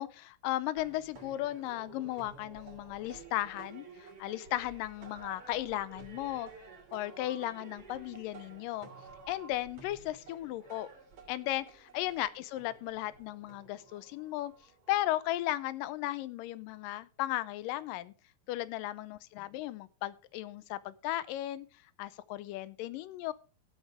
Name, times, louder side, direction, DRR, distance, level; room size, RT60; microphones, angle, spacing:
voice 1, 0.0-6.5 6.9-8.9 9.3-10.9 11.3-14.5 14.9-18.1 18.5-21.7 22.0-23.3, left 15 dB, 90° left, 16 dB, 2.3 m, -36 dB
sound 1, 0.7-15.2, right 4 dB, 45° right, 3.8 m, -52 dB
17.0 x 8.2 x 3.5 m, 0.35 s
omnidirectional pair, 3.8 m